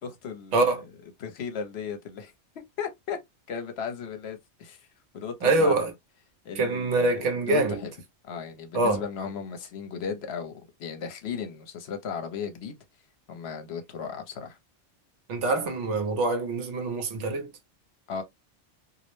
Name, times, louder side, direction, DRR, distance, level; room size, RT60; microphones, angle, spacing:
voice 1, 0.0-0.8 1.2-3.2 3.5-4.8 5.1-5.7 6.4-7.2 7.5-7.9 8.2-12.8 13.3-14.6 18.1-18.2, left 6 dB, 70° left, 0.8 m, -36 dB
voice 2, 5.4-5.9 6.5-7.8 8.7-9.0 15.3-17.5, right 2 dB, 85° right, 1.0 m, -25 dB
2.4 x 2.0 x 3.0 m
omnidirectional pair, 1.2 m